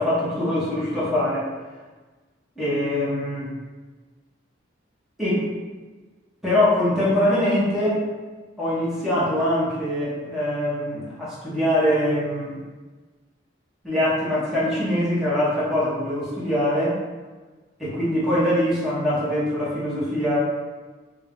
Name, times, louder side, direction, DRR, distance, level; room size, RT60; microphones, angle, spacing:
voice 1, 0.0-1.5 2.6-3.5 5.2-5.5 6.4-8.0 8.6-12.6 13.8-17.0 17.8-20.4, left 1 dB, ahead, -10 dB, 1.0 m, -23 dB
3.5 x 2.6 x 3.6 m, 1.3 s
head